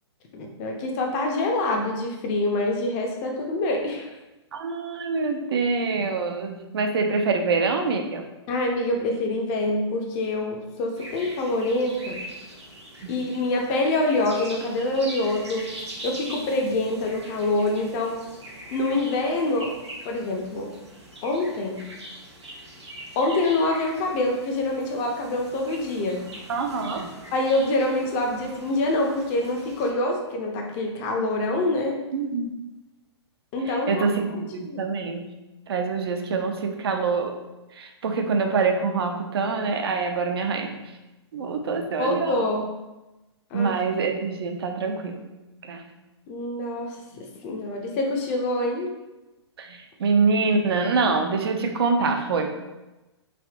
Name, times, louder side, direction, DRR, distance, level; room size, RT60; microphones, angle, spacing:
voice 1, 0.3-4.1 8.5-12.2 13.1-15.7 16.0-18.2 18.7-19.7 20.0-20.7 21.2-21.9 23.2-26.2 27.3-32.0 33.5-34.1 34.7-34.8 42.0-42.7 43.5-43.7 46.3-48.9, left 2 dB, 30° left, 1 dB, 0.4 m, -25 dB
voice 2, 4.5-8.3 13.0-13.2 26.5-27.1 32.1-32.5 33.7-35.3 35.7-37.3 37.7-40.8 41.3-42.4 43.5-45.2 45.6-45.8 49.6-52.5, right 4 dB, 60° right, 4 dB, 0.4 m, -25 dB
sound 1, 11.0-29.9, right 1 dB, 75° right, 1.0 m, -42 dB
3.3 x 2.5 x 2.4 m, 1.0 s
figure-of-eight pair, 115°, 15 cm